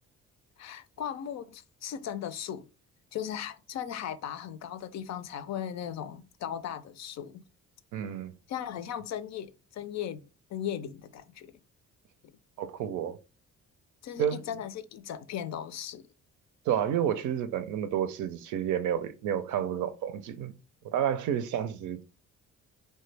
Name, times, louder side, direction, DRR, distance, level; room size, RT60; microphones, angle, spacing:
voice 1, 0.6-2.7 3.1-7.4 8.5-10.2 10.5-11.5 14.0-16.0, left 9 dB, 60° left, 0.5 m, -37 dB
voice 2, 7.9-8.3 12.6-13.2 14.2-14.4 16.7-20.5 20.8-22.0, right 9 dB, 75° right, 0.5 m, -30 dB
3.1 x 2.2 x 3.2 m
cardioid pair, 90°, 30 cm